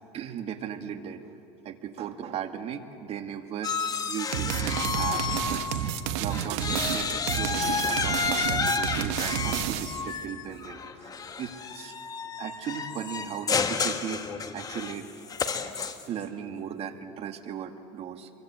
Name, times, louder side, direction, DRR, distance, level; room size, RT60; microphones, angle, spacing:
voice 1, 0.1-1.4 1.6-3.7 4.1-5.6 6.2-11.1 11.4-11.9 12.4-15.1 16.1-18.3, right 8 dB, 45° right, 6 dB, 2.0 m, -37 dB
sound 1, 3.6-6.0 6.3-16.2, left 5 dB, 25° left, 1.6 m, -31 dB
sound 2, 4.3-10.1, right 10 dB, 80° right, 1.3 m, -30 dB
26.0 x 23.5 x 8.4 m, 2.7 s
supercardioid pair, 110°, 14 cm